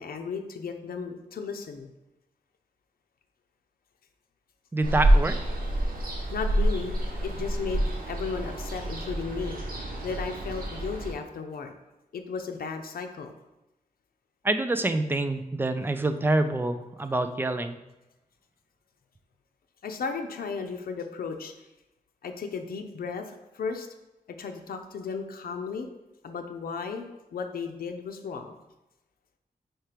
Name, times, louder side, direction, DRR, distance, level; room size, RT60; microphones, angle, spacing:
voice 1, 0.0-1.9 6.3-9.6 10.0-11.7 12.1-13.3 19.8-21.5 22.2-23.2 23.5-23.9 24.4-25.9 26.2-27.0 27.3-28.5, left 5 dB, 90° left, 5 dB, 0.6 m, -35 dB
voice 2, 4.7-5.4 14.4-17.8, right 2 dB, 15° right, 8 dB, 0.4 m, -26 dB
Ocean, 4.8-11.1, right 1 dB, 75° right, 1.2 m, -27 dB
4.5 x 4.4 x 5.0 m, 0.97 s
wide cardioid pair, 145°, 15 cm